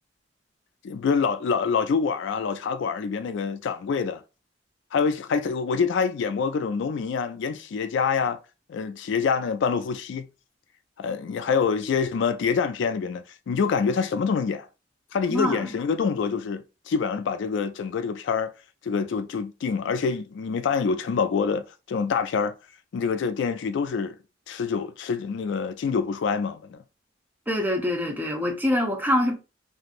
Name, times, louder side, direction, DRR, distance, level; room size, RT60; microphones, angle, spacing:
voice 1, 0.8-4.2 4.9-8.4 8.7-10.3 11.0-14.7 15.1-18.5 18.8-22.5 22.9-24.2 24.5-26.8, left 5 dB, 65° left, 0.3 m, -26 dB
voice 2, 15.3-15.6 27.5-29.3, left 1 dB, 10° right, 0.6 m, -24 dB
3.0 x 2.6 x 2.5 m
head